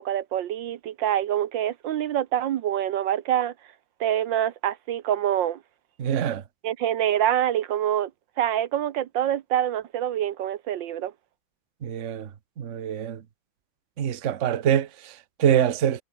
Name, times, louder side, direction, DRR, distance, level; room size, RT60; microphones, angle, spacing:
voice 1, 0.0-3.5 4.0-5.6 6.6-8.1 8.4-11.1, right 11 dB, 75° right, 1.5 m, -25 dB
voice 2, 6.0-6.4 11.8-12.3 12.6-13.2 14.0-16.0, right 9 dB, 45° right, 1.2 m, -25 dB
omnidirectional pair, 2.1 m